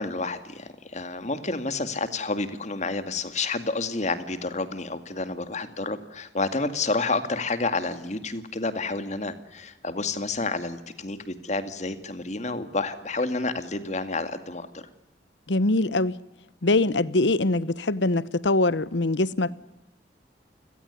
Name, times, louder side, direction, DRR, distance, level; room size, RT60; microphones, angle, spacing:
voice 1, 0.0-14.8, left 3 dB, 40° left, 2.2 m, -29 dB
voice 2, 15.5-16.1 16.6-19.5, left 2 dB, 90° left, 1.0 m, -23 dB
30.0 x 17.0 x 9.7 m
head